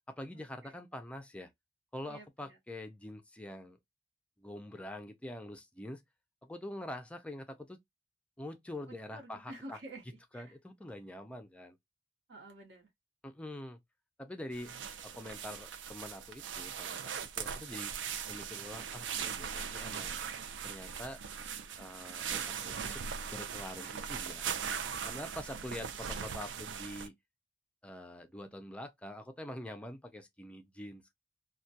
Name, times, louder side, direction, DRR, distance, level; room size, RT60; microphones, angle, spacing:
voice 1, 0.1-1.5 1.9-3.8 4.4-6.0 6.4-7.8 8.4-9.8 10.3-11.8 13.2-13.8 14.2-14.7 15.0-18.0 18.3-20.1 20.6-21.2 21.8-23.0 23.3-24.5 25.0-27.2 27.8-31.1, left 1 dB, 5° left, 0.3 m, -45 dB
voice 2, 2.1-2.6 9.1-10.5 12.3-12.9, right 1 dB, 70° right, 0.8 m, -49 dB
sound 1, 14.5-27.1, right 7 dB, 90° right, 0.4 m, -40 dB
2.2 x 2.2 x 2.6 m
head